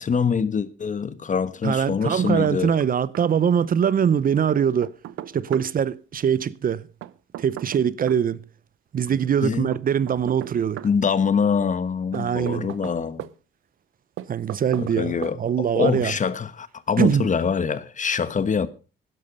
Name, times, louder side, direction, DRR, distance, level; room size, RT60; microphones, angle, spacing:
voice 1, 0.0-2.7 9.4-9.7 10.8-13.3 14.8-18.7, left 6 dB, 40° left, 1.3 m, -24 dB
voice 2, 1.6-4.9 5.3-6.9 7.4-8.4 8.9-10.8 12.1-12.7 14.3-16.1 17.0-17.3, right 8 dB, 45° right, 0.6 m, -22 dB
Knock, 2.1-2.9 3.1-3.2 4.5-5.7 7.0-8.2 9.7-10.9 12.1-13.3 14.2-15.0 15.2-15.4, right 13 dB, 80° right, 0.7 m, -37 dB
12.5 x 11.0 x 5.5 m
cardioid pair, 90°, 20 cm